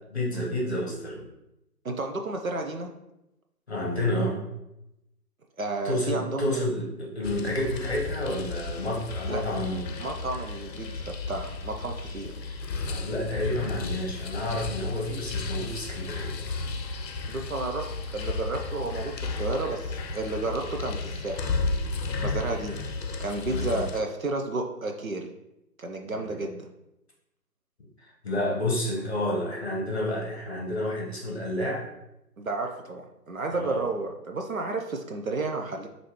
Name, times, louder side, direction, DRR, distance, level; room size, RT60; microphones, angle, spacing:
voice 1, 0.1-1.3 3.7-4.4 5.8-9.8 12.9-16.5 23.5-23.9 26.1-26.4 28.0-31.9 33.5-33.8, left 1 dB, 40° left, -3 dB, 1.0 m, -30 dB
voice 2, 1.8-2.9 5.6-6.6 9.3-9.6 10.0-12.3 17.3-21.5 22.2-22.8 23.2-25.3 25.8-26.7 32.4-35.9, right 2 dB, 55° right, 3 dB, 0.5 m, -32 dB
sound 1, 7.2-24.0, left 3 dB, 80° left, 0.6 m, -33 dB
6.3 x 2.7 x 3.0 m, 0.89 s
hypercardioid pair, 180°, 49 cm